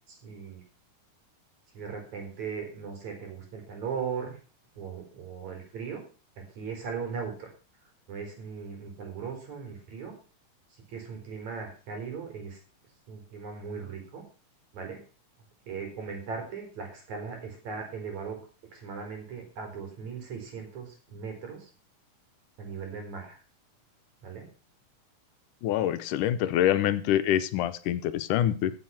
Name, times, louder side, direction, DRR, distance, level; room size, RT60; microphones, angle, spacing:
voice 1, 0.1-0.6 1.7-4.4 4.7-6.0 6.4-7.5 8.1-10.2 10.9-12.6 13.1-14.2 14.7-15.0 15.7-18.4 18.7-21.7 22.6-23.4 24.2-24.5, right 6 dB, 60° right, 3 dB, 5.4 m, -38 dB
voice 2, 25.6-28.7, left 11 dB, 85° left, 12 dB, 2.4 m, -25 dB
15.0 x 7.4 x 5.8 m, 0.37 s
omnidirectional pair, 3.6 m